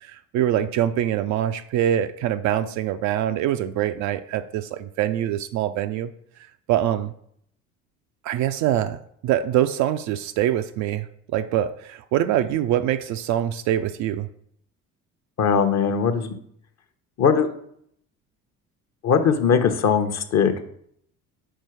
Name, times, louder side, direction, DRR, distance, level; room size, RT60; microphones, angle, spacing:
voice 1, 0.0-6.1 6.7-7.1 8.2-9.0 9.2-14.3, right 11 dB, 45° right, 10 dB, 0.4 m, -24 dB
voice 2, 15.4-16.3 17.2-17.5 19.0-20.6, left 6 dB, 40° left, 8 dB, 0.9 m, -20 dB
4.5 x 4.5 x 5.9 m, 0.68 s
figure-of-eight pair, 55°, 42 cm